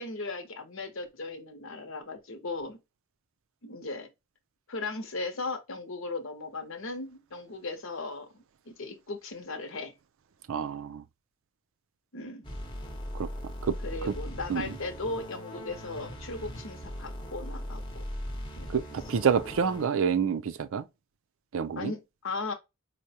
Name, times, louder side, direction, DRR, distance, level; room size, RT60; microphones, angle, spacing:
voice 1, 0.0-2.8 3.6-4.1 4.7-8.3 8.7-9.9 12.1-12.5 13.8-18.0 18.6-18.7 21.8-22.5, left 3 dB, 65° left, 0.9 m, -37 dB
voice 2, 10.5-11.0 13.2-13.3 13.6-13.7 14.1-14.2 14.5-14.7 18.7-20.8 21.5-21.9, right 6 dB, 65° right, 0.4 m, -28 dB
sound 1, 12.4-19.9, equal, 20° left, 0.8 m, -39 dB
4.6 x 2.2 x 2.7 m
head